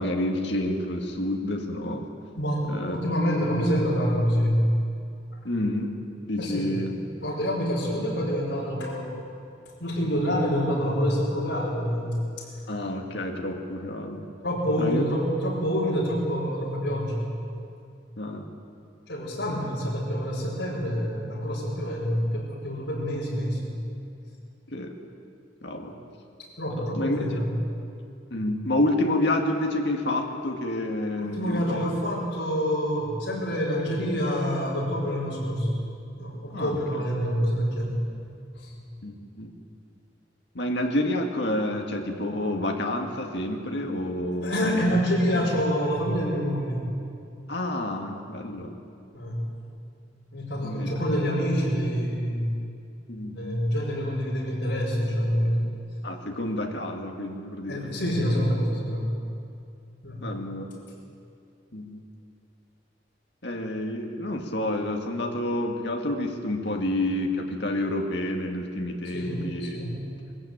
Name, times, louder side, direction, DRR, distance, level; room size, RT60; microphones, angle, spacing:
voice 1, 0.0-2.1 2.7-3.0 5.4-6.0 6.3-6.9 12.7-14.3 14.8-15.0 18.2-18.5 19.5-19.6 24.7-24.9 25.6-26.0 26.7-27.2 28.3-31.9 36.5-37.0 39.0-39.5 40.5-44.9 47.5-48.7 50.6-50.9 53.1-53.6 56.0-58.0 60.2-60.7 61.7-62.0 63.4-69.8, left 1 dB, 65° left, 3 dB, 2.0 m, -29 dB
voice 2, 2.4-4.7 6.4-6.7 7.2-9.1 9.8-12.2 14.4-17.3 19.1-23.7 26.6-27.5 31.2-35.7 36.2-38.0 38.5-38.7 44.4-46.8 49.1-49.4 49.7-49.8 50.3-52.5 53.3-55.6 57.7-59.1 60.0-60.2 69.1-70.1, equal, 85° left, -5 dB, 5.1 m, -27 dB
21.0 x 15.0 x 8.9 m, 2.5 s
head